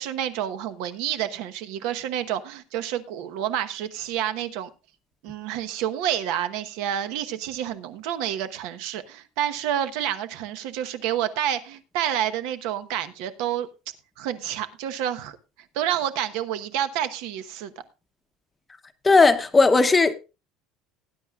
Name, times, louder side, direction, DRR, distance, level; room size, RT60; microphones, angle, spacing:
voice 1, 0.0-4.7 5.2-13.7 14.2-15.4 15.7-17.7, right 10 dB, 70° right, 1.0 m, -29 dB
voice 2, 19.0-20.1, left 3 dB, 15° left, 0.8 m, -16 dB
19.0 x 9.7 x 2.4 m
cardioid pair, 165°, 0 cm